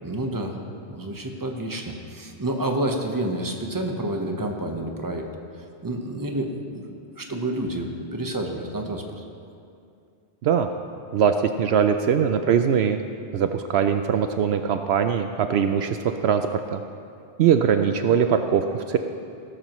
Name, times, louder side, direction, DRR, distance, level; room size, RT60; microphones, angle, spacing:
voice 1, 0.0-0.6 0.9-5.3 5.8-9.2, right 1 dB, 20° right, 2 dB, 1.0 m, -29 dB
voice 2, 11.1-13.0 13.3-16.8 17.4-19.0, right 8 dB, 70° right, 7 dB, 0.8 m, -21 dB
17.5 x 13.0 x 3.1 m, 2.5 s
omnidirectional pair, 1.2 m